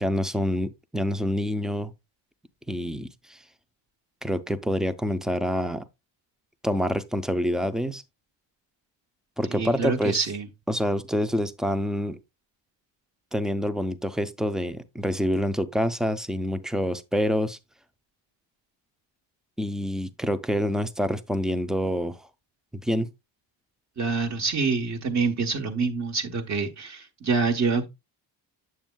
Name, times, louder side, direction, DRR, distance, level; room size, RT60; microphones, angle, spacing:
voice 1, 0.0-1.9 2.7-3.4 4.2-5.8 6.6-8.0 9.4-10.2 10.7-12.2 13.3-17.6 19.6-22.2 22.7-23.1, equal, ahead, 0.4 m, -27 dB
voice 2, 9.5-10.5 24.0-27.9, right 4 dB, 40° right, 1.2 m, -26 dB
8.9 x 7.2 x 2.2 m
cardioid pair, 140°, 45 cm